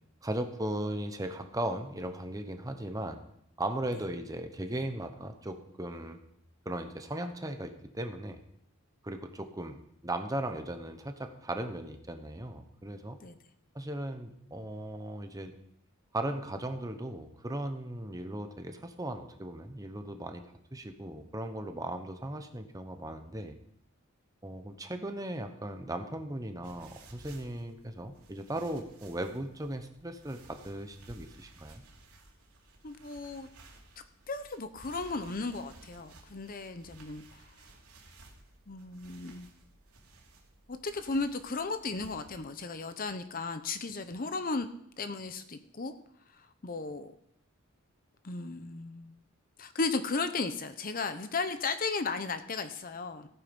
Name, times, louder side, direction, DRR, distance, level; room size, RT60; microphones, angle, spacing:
voice 1, 0.2-3.2 3.6-6.2 6.6-8.4 9.0-9.8 10.0-13.2 13.7-15.5 16.1-20.4 20.7-23.6 24.4-31.8, right 1 dB, 15° right, 7 dB, 1.0 m, -37 dB
sound 1, 26.6-42.5, right 2 dB, 80° right, 2.8 m, -56 dB
voice 2, 32.8-33.5 34.3-37.4 38.7-39.5 40.7-44.7 45.0-45.9 46.3-47.1 48.2-49.1 49.6-53.3, left 3 dB, 40° left, 10 dB, 0.7 m, -35 dB
15.5 x 9.2 x 5.3 m, 0.73 s
head